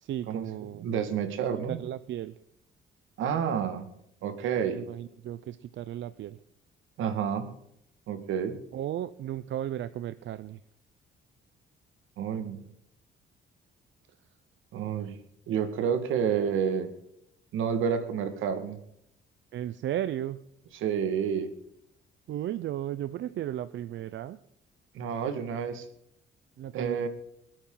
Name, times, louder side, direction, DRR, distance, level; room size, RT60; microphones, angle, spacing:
voice 1, 0.0-0.9 1.7-2.3 4.7-6.4 8.7-10.6 19.5-20.4 22.3-24.4 26.6-27.1, right 11 dB, 70° right, 13 dB, 0.7 m, -35 dB
voice 2, 0.8-1.8 3.2-3.9 4.2-4.8 7.0-7.5 8.1-8.6 12.2-12.6 14.7-15.2 15.5-16.9 17.5-18.8 20.7-21.5 24.9-25.9 26.7-27.1, right 7 dB, 85° right, 8 dB, 1.9 m, -29 dB
26.0 x 8.8 x 3.9 m, 0.76 s
cardioid pair, 90°, 20 cm